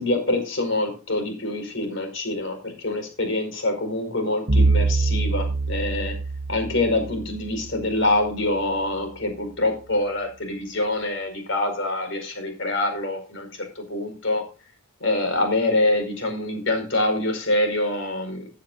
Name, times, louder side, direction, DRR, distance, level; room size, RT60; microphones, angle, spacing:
voice 1, 0.0-6.1 6.5-14.5 15.0-18.5, left 2 dB, 55° left, 5 dB, 5.0 m, -25 dB
Bowed string instrument, 4.5-8.7, right 3 dB, 45° right, 1.1 m, -25 dB
15.0 x 10.0 x 2.6 m, 0.33 s
head